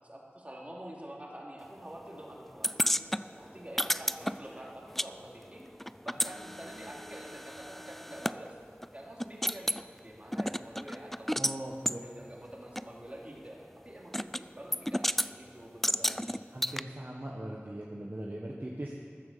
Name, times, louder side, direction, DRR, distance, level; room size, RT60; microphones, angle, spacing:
voice 1, 0.0-2.9 3.3-5.6 6.0-8.6 8.9-9.7 10.0-11.4 12.0-16.4, right 1 dB, 30° right, -3 dB, 3.0 m, -47 dB
sound 1, 2.6-5.1 5.4-8.4 8.8-8.9 9.2-9.8 10.3-11.6 11.9-12.0 12.8-12.9 14.1-14.4 14.7-15.3 15.8-16.8, equal, 5° left, 0.3 m, -32 dB
voice 2, 11.3-12.0 16.5-19.0, right 1 dB, 50° right, -3 dB, 1.4 m, -40 dB
14.0 x 9.7 x 6.9 m, 2.3 s
wide cardioid pair, 45°, 4 cm